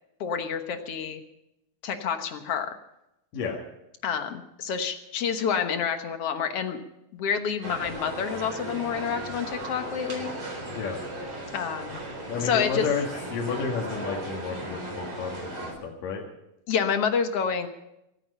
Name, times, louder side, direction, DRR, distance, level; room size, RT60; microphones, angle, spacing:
voice 1, 0.2-1.2 1.8-2.7 4.0-6.8 7.1-10.3 11.5-12.0 12.4-12.9 16.7-17.7, left 7 dB, 60° left, 7 dB, 1.7 m, -28 dB
sound 1, 7.6-15.7, right 1 dB, 35° right, 4.6 m, -36 dB
voice 2, 12.3-13.1 13.3-16.2, left 5 dB, 75° left, -1 dB, 3.5 m, -31 dB
25.5 x 9.1 x 5.6 m, 0.86 s
omnidirectional pair, 3.9 m